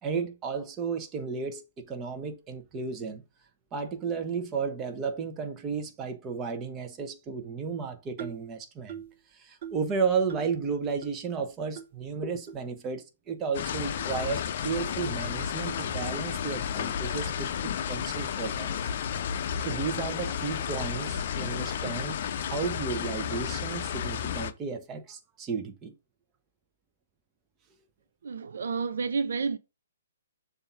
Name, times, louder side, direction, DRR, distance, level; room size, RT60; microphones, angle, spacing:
voice 1, 0.0-3.2 3.7-9.0 9.3-18.7 19.2-19.3 19.6-25.9, right 5 dB, 20° right, 1.0 m, -33 dB
sound 1, 8.2-8.5 8.9-9.2 9.6-9.9 10.3-10.6 11.0-11.1 11.8-11.9 12.5-12.6 13.3-13.4 14.0-14.2, right 9 dB, 45° right, 1.0 m, -41 dB
sound 2, 13.5-24.5, left 8 dB, 50° left, 0.6 m, -32 dB
voice 2, 28.2-29.6, right 5 dB, 70° right, 0.5 m, -30 dB
6.9 x 2.7 x 5.6 m
hypercardioid pair, 135°, 0 cm